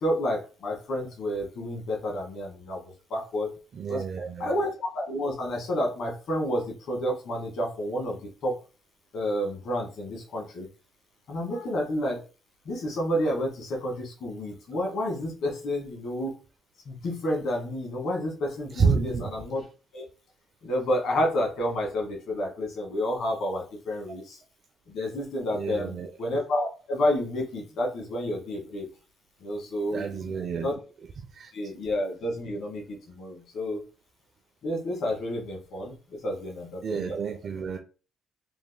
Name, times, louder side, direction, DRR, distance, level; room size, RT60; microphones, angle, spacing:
voice 1, 0.0-2.8 3.1-3.5 3.9-4.0 4.4-8.5 9.1-10.7 11.3-12.2 12.6-16.3 16.8-19.6 19.9-20.0 20.6-24.4 24.9-28.9 29.4-30.3 30.6-30.7 31.5-33.8 34.6-37.2, left 1 dB, 70° left, 0 dB, 1.5 m, -30 dB
voice 2, 3.7-4.5 18.8-19.3 25.5-26.1 29.9-30.7 31.3-31.5 36.8-37.8, right 5 dB, 55° right, 4 dB, 0.4 m, -29 dB
3.5 x 3.4 x 2.2 m, 0.34 s
cardioid pair, 90°, 0 cm